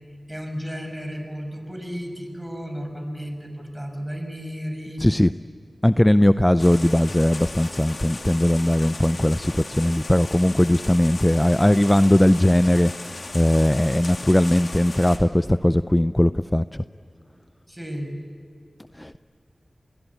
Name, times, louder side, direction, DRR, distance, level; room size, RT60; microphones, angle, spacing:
voice 1, 0.3-5.0 17.7-18.1, equal, 10° right, 5 dB, 6.1 m, -33 dB
voice 2, 5.0-5.3 5.8-12.9 13.3-16.8 19.0-19.2, left 1 dB, 15° left, 12 dB, 0.5 m, -19 dB
sound 1, 6.6-15.2, left 2 dB, 65° left, 3.0 m, -37 dB
28.5 x 21.5 x 8.3 m, 2.6 s
cardioid pair, 45°, 0 cm